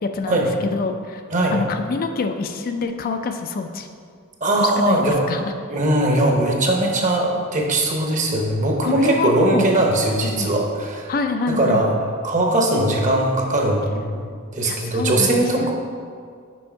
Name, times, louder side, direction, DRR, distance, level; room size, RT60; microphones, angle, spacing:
voice 1, 0.0-1.2 1.5-3.9 4.5-5.5 8.8-9.8 10.2-10.5 11.1-11.9 14.6-15.7, left 4 dB, 45° left, 6 dB, 0.4 m, -26 dB
voice 2, 4.4-5.3 5.7-11.1 11.5-11.9 12.2-14.2 14.5-15.7, right 1 dB, 35° right, 0 dB, 0.9 m, -20 dB
6.2 x 5.2 x 4.5 m, 2.1 s
head